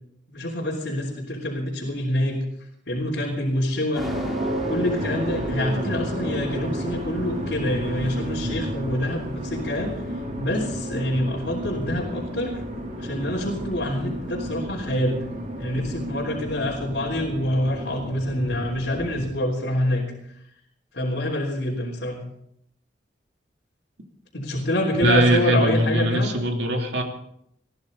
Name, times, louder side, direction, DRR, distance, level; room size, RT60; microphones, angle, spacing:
voice 1, 0.3-2.4 2.9-4.1 4.5-9.9 10.4-12.6 13.0-15.2 15.6-20.0 20.9-22.2 24.3-26.3, left 1 dB, 75° left, -4 dB, 3.5 m, -26 dB
sound 1, 3.9-10.2, equal, ahead, 2.8 m, -42 dB
sound 2, 4.0-19.3, equal, 45° right, 3.6 m, -31 dB
voice 2, 25.0-27.0, right 1 dB, 70° right, 2 dB, 2.8 m, -21 dB
21.5 x 15.0 x 4.0 m, 0.74 s
head